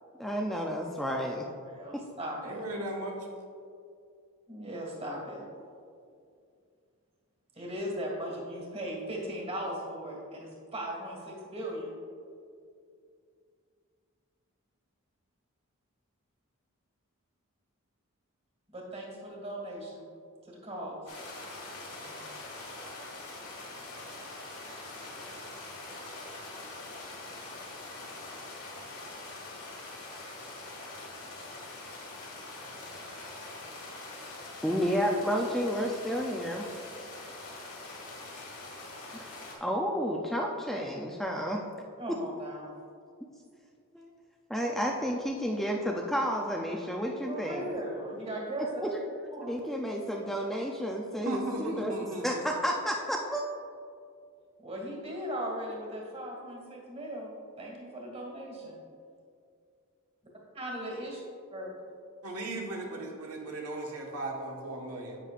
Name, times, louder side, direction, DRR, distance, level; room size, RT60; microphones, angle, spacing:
voice 1, 0.2-1.5 1.9-2.0 34.6-36.7 39.1-39.3 39.6-41.6 42.1-42.2 43.9-44.1 44.5-47.7 48.8-48.9 49.5-51.9 52.2-53.4, equal, ahead, 0 dB, 0.4 m, -31 dB
voice 2, 1.7-2.6 4.5-5.4 7.5-11.9 18.7-20.0 20.5-21.0 22.1-22.2 42.0-42.7 47.3-48.8 49.3-49.5 54.6-57.3 57.6-58.8 60.5-61.2 61.5-61.7, right 1 dB, 30° right, -1 dB, 1.8 m, -38 dB
voice 3, 2.4-3.2 51.2-52.4 62.2-65.2, right 2 dB, 85° right, -1 dB, 1.4 m, -36 dB
sound 1, 21.1-39.5, left 2 dB, 75° left, 2.0 m, -44 dB
10.0 x 8.3 x 2.5 m, 2.4 s
head